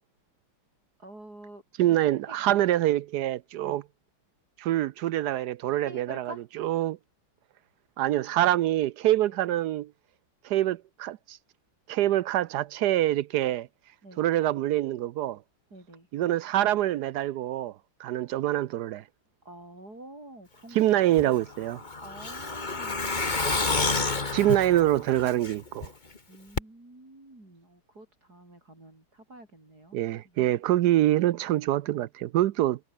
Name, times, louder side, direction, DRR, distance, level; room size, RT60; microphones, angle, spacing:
voice 1, 1.0-1.6 1.9-2.0 2.3-2.4 3.6-3.8 5.8-6.5 9.3-9.4 14.0-14.2 15.7-16.1 19.4-20.8 22.0-23.1 26.3-30.5, right 1 dB, 45° right, 8.4 m, -47 dB
voice 2, 1.8-3.8 4.6-6.3 6.6-7.0 8.0-9.9 10.4-11.4 11.9-13.7 14.2-15.4 16.1-17.7 18.0-19.0 20.7-21.8 24.3-25.9 29.9-32.8, right 13 dB, 80° right, 0.9 m, -25 dB
Truck, 21.2-25.9 26.2-26.3 26.6-26.7, left 3 dB, 20° left, 1.8 m, -29 dB
omnidirectional pair, 2.4 m